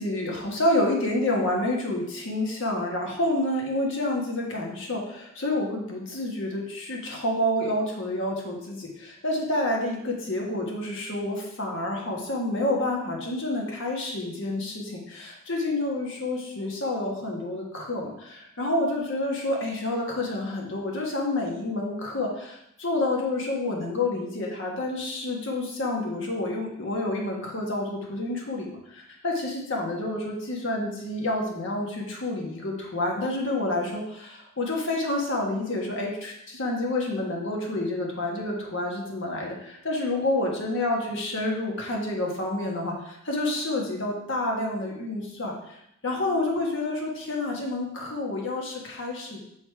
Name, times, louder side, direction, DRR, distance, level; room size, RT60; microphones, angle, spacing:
voice 1, 0.0-45.5 46.0-49.4, left 1 dB, 55° left, 0 dB, 1.5 m, -29 dB
6.7 x 4.1 x 4.6 m, 0.78 s
head